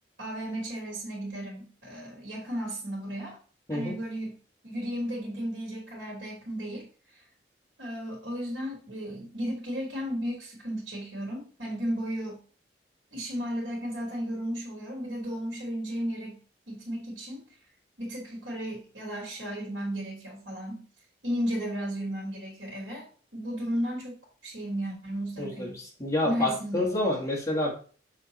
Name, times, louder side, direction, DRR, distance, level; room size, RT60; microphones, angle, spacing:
voice 1, 0.2-3.4 3.7-4.3 4.6-6.9 7.1-7.2 7.8-12.4 13.1-16.4 16.7-17.4 18.0-20.8 21.2-23.1 23.3-24.1 24.4-25.8 26.2-26.9, equal, 70° right, -5 dB, 2.9 m, -34 dB
voice 2, 25.4-27.7, left 1 dB, 15° left, -2 dB, 1.9 m, -28 dB
6.8 x 3.8 x 4.3 m, 0.40 s
head